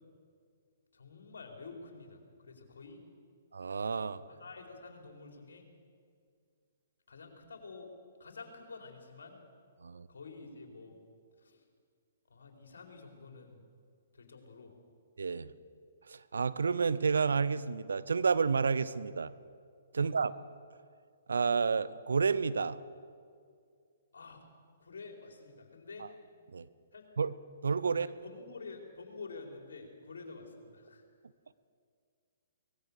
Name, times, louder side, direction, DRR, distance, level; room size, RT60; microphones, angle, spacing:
voice 1, 0.9-3.0 4.3-5.6 7.1-7.9 8.2-9.4 10.1-11.0 11.4-11.7 12.3-13.6 14.1-14.7 20.0-20.1 24.1-24.5 24.8-26.1 26.9-27.1 27.9-31.0, left 4 dB, 70° left, 2 dB, 4.4 m, -49 dB
voice 2, 3.5-4.2 9.8-10.1 15.2-15.5 16.1-19.3 19.9-20.3 21.3-22.8 26.5-26.7 27.2-27.3 27.6-28.1, right 5 dB, 75° right, 16 dB, 0.8 m, -30 dB
23.5 x 19.5 x 6.8 m, 2.2 s
figure-of-eight pair, 125°, 0 cm